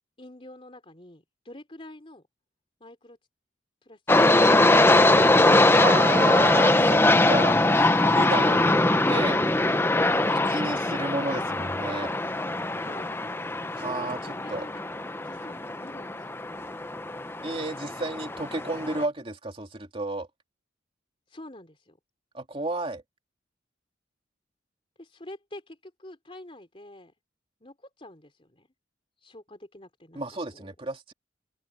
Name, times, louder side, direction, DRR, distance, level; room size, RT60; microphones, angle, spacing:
voice 1, 0.2-2.2 2.8-3.2 3.8-5.0 12.8-13.2 13.7-14.8 15.2-16.6 21.3-22.0 25.0-27.1 27.6-28.7 29.2-30.7, left 1 dB, 30° left, 3.5 m, -47 dB
sound 1, 4.1-19.0, left 2 dB, 15° left, 0.9 m, -22 dB
voice 2, 5.7-7.6 8.1-9.5 10.5-12.1 13.7-14.2 14.5-14.7 17.4-20.3 22.3-23.0 30.1-31.1, right 2 dB, 30° right, 2.9 m, -32 dB
open air
head